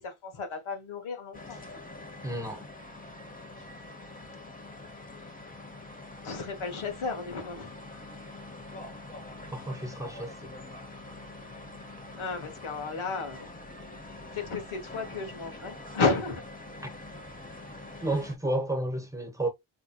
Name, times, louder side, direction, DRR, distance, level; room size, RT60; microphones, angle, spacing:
voice 1, 0.0-1.6 6.2-7.7 12.2-13.5 14.3-16.4, left 4 dB, 85° left, 1.2 m, -32 dB
sound 1, 1.3-18.4, left 2 dB, 15° left, 0.8 m, -45 dB
voice 2, 2.2-2.6 9.5-10.5 18.0-19.5, right 1 dB, 5° right, 1.0 m, -31 dB
4.6 x 2.9 x 2.2 m
wide cardioid pair, 100°, 48 cm